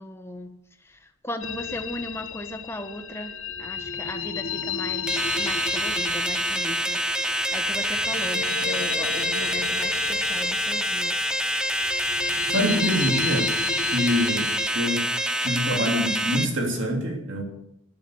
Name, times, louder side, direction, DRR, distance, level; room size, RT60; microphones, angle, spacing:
voice 1, 0.0-7.0 7.3-11.2, left 1 dB, 10° left, 1.3 m, -37 dB
sound 1, 1.4-14.7, left 7 dB, 70° left, 1.2 m, -33 dB
sound 2, 5.1-16.4, right 1 dB, 5° right, 0.8 m, -26 dB
voice 2, 12.3-13.5 13.9-15.1 15.4-17.4, equal, 60° right, 3.1 m, -25 dB
12.5 x 12.0 x 7.9 m
head